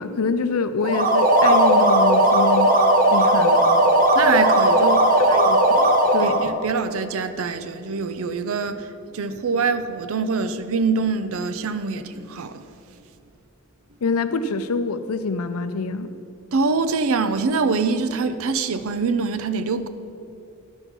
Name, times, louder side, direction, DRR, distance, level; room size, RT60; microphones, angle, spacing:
voice 1, 0.0-2.7 3.1-3.6 5.3-5.9 6.1-6.4 14.0-16.1, left 4 dB, 80° left, 11 dB, 0.6 m, -26 dB
sound 1, 0.8-6.5, right 1 dB, 40° right, 0.9 m, -17 dB
voice 2, 4.1-5.3 6.2-12.6 16.5-19.9, right 4 dB, 70° right, 11 dB, 0.5 m, -24 dB
11.5 x 5.4 x 5.9 m, 2.7 s
head